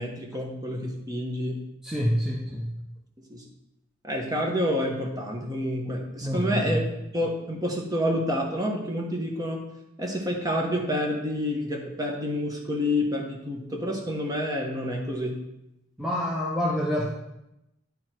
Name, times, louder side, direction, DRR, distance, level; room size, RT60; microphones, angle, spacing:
voice 1, 0.0-1.7 3.3-3.4 4.0-6.8 7.1-9.6 10.0-15.4, equal, 20° right, 0 dB, 1.2 m, -28 dB
voice 2, 1.8-2.7 6.2-6.8 16.0-17.1, equal, ahead, -5 dB, 0.8 m, -27 dB
11.0 x 3.8 x 4.5 m, 0.89 s
head